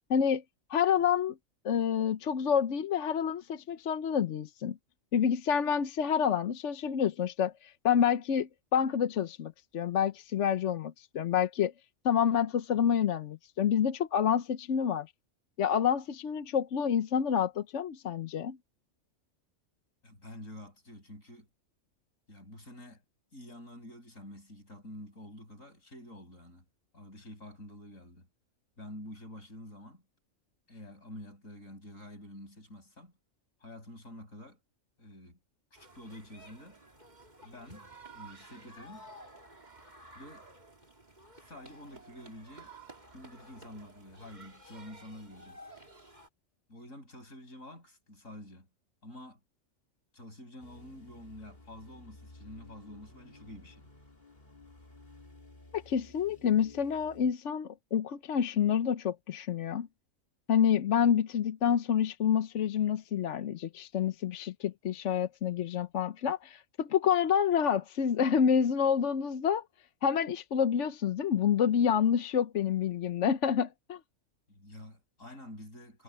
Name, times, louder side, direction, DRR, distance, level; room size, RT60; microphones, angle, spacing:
voice 1, 0.1-0.4 0.7-1.4 1.6-4.8 5.1-11.7 12.0-15.1 15.6-18.6 55.7-59.9 60.5-69.6 70.0-74.0, left 8 dB, 65° left, 1.1 m, -28 dB
voice 2, 20.0-21.5 22.3-23.0 23.3-26.6 26.9-28.3 28.8-30.0 30.7-33.1 33.6-34.6 35.0-35.4 35.7-36.8 37.4-37.9 38.1-39.1 40.1-40.5 41.4-42.7 43.1-45.6 46.7-48.7 49.0-49.4 50.1-53.9 74.5-76.0, left 1 dB, 85° left, 7.1 m, -48 dB
sound 1, 35.7-46.3, right 2 dB, 35° right, 2.9 m, -53 dB
sound 2, 50.6-57.3, left 2 dB, 35° left, 3.1 m, -54 dB
omnidirectional pair, 1.3 m